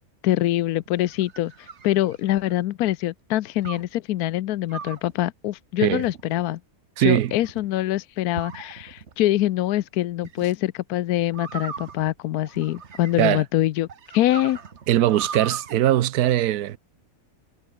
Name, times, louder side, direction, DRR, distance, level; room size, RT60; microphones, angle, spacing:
voice 1, 0.2-6.6 7.0-13.9 14.1-14.6, left 14 dB, 80° left, 1.1 m, -24 dB
sound 1, 0.8-2.6 3.6-4.0 4.7-5.1 5.9-6.4 7.0-7.7 8.4-9.1 10.2-10.5 11.3-13.4 13.9-15.7, right 6 dB, 50° right, 1.6 m, -38 dB
voice 2, 7.0-7.3 13.2-13.4 14.9-16.8, right 13 dB, 80° right, 1.3 m, -20 dB
omnidirectional pair, 1.6 m